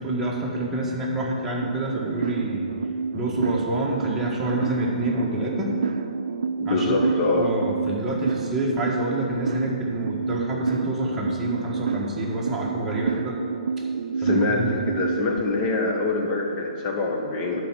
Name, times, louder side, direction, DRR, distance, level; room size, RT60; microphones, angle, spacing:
voice 1, 0.0-2.7 3.1-5.7 6.6-13.4 13.8-13.9 14.2-14.8, right 1 dB, 10° right, -4 dB, 1.6 m, -28 dB
sound 1, 1.6-15.4, right 5 dB, 75° right, 0.5 m, -29 dB
voice 2, 6.6-7.5 14.2-17.6, left 3 dB, 30° left, 0 dB, 1.5 m, -24 dB
10.5 x 4.6 x 7.4 m, 2.6 s
hypercardioid pair, 135°, 4 cm